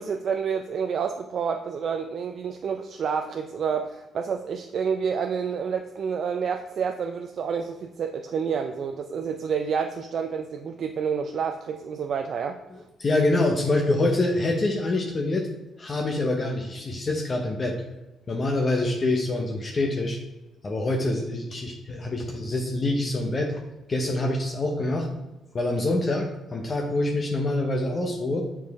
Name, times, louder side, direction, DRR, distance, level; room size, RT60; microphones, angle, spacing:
voice 1, 0.0-12.6, right 6 dB, 60° right, 5 dB, 0.4 m, -29 dB
voice 2, 13.0-15.5 15.8-17.8 18.3-20.2 20.6-23.6 23.9-25.1 25.5-28.4, left 2 dB, 35° left, 2 dB, 0.8 m, -25 dB
7.4 x 4.8 x 3.5 m, 1.0 s
cardioid pair, 90°, 0 cm